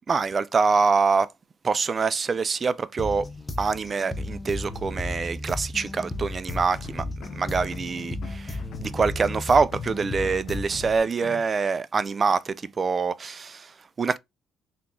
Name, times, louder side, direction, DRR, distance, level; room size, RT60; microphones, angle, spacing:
voice 1, 0.1-1.3 1.6-3.3 3.6-14.2, right 4 dB, 35° right, 0.4 m, -25 dB
sound 1, 3.0-11.0, left 1 dB, 20° left, 0.9 m, -34 dB
sound 2, 6.4-11.4, left 7 dB, 65° left, 0.6 m, -42 dB
3.7 x 2.9 x 3.7 m
supercardioid pair, 70°, 0 cm